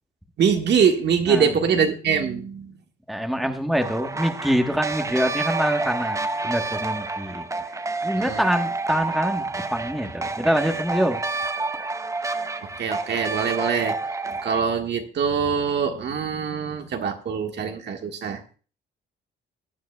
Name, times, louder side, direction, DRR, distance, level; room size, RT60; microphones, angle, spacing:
voice 1, 0.4-2.7 8.2-8.4 12.6-14.0 14.4-18.4, right 6 dB, 60° right, 4 dB, 1.6 m, -23 dB
voice 2, 1.3-1.6 3.1-7.5 8.0-11.2, equal, ahead, 4 dB, 1.2 m, -25 dB
sound 1, 3.8-14.6, right 3 dB, 15° right, 0.7 m, -29 dB
17.5 x 9.3 x 2.3 m, 0.38 s
cardioid pair, 90°, 20 cm